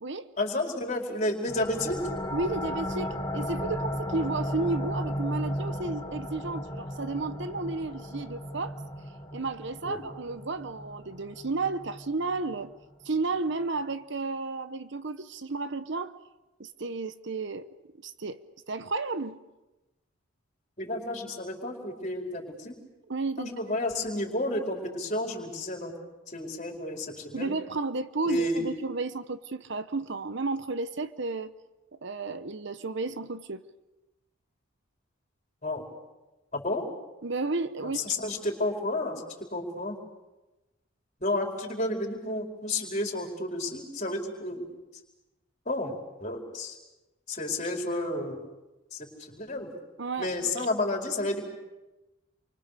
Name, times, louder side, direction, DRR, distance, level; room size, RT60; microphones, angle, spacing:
voice 1, 0.4-2.0 9.8-10.0 20.8-22.7 23.4-25.9 26.3-27.5 28.2-28.7 35.6-35.9 36.5-36.9 37.8-40.0 41.2-44.7 45.6-45.9 46.2-46.7 47.3-48.4 48.9-49.7 50.2-51.5, left 2 dB, 35° left, 2 dB, 4.7 m, -31 dB
sound 1, 1.5-12.8, equal, 20° left, 2.1 m, -35 dB
voice 2, 2.3-8.8 9.3-12.7 13.0-16.1 16.6-17.7 18.0-19.4 23.1-23.8 27.3-31.5 32.0-33.6 37.2-38.0 50.0-50.7, right 3 dB, 55° right, 12 dB, 0.9 m, -32 dB
28.5 x 24.5 x 6.8 m, 1.0 s
head